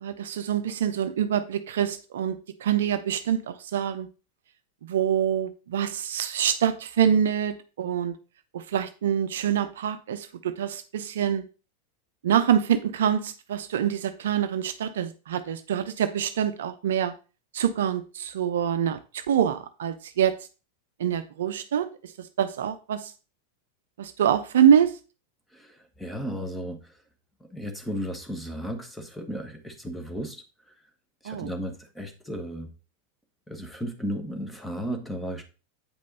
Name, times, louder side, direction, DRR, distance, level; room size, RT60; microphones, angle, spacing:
voice 1, 0.0-2.3 2.6-4.1 4.8-8.1 8.5-11.4 12.2-17.1 17.5-20.3 21.0-21.9 22.4-23.1 24.0-24.9 31.2-31.5, right 9 dB, 60° right, 0.6 m, -25 dB
voice 2, 25.5-26.9 27.5-30.4 31.2-32.7 33.5-35.4, equal, 5° left, 1.6 m, -34 dB
8.7 x 5.3 x 4.0 m
figure-of-eight pair, 90°, 0 cm